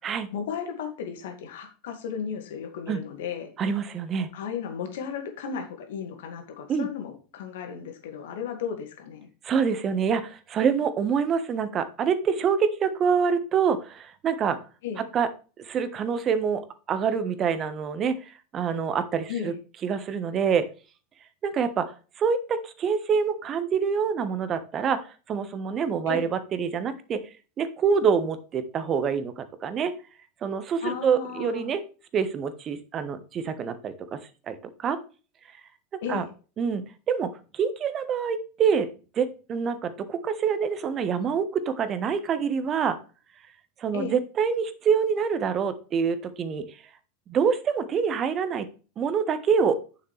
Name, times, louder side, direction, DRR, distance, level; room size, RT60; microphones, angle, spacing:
voice 1, 0.3-3.5 4.3-9.3 14.8-15.0 19.3-19.6 26.1-26.3 30.8-31.7 36.0-36.3 43.9-44.2, left 7 dB, 65° left, 5 dB, 2.1 m, -34 dB
voice 2, 3.6-4.3 6.7-6.9 9.4-14.6 15.0-15.3 15.6-16.6 16.9-18.2 18.5-19.5 19.8-20.7 21.4-21.9 22.2-27.2 27.6-29.9 30.4-31.8 32.1-34.2 34.5-34.6 34.8-35.0 36.1-36.2 36.6-38.9 39.1-43.0 43.8-46.8 47.3-48.7 49.0-49.8, right 6 dB, 35° right, 11 dB, 1.3 m, -26 dB
9.4 x 7.3 x 3.4 m, 0.35 s
figure-of-eight pair, 80°, 0 cm